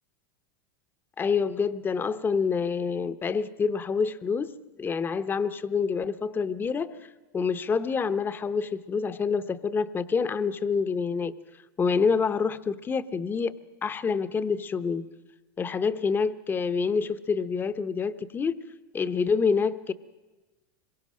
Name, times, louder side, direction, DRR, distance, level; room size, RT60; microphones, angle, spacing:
voice 1, 1.2-7.0 7.3-11.3 11.8-13.5 13.8-15.0 15.6-18.6 18.9-19.9, left 5 dB, 20° left, 13 dB, 0.8 m, -27 dB
25.5 x 22.5 x 6.4 m, 1.2 s
supercardioid pair, 125°, 11 cm